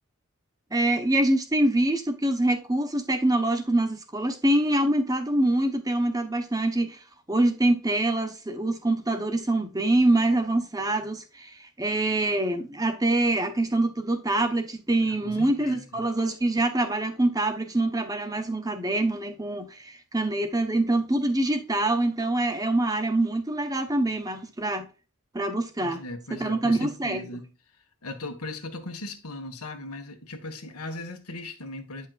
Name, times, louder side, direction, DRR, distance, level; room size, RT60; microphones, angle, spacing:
voice 1, 0.7-24.9 25.3-26.0 26.3-27.3, right 1 dB, 15° right, 0.9 m, -25 dB
voice 2, 15.1-16.1 25.8-27.5 28.0-32.1, left 2 dB, 90° left, 1.5 m, -38 dB
9.2 x 5.7 x 2.4 m
head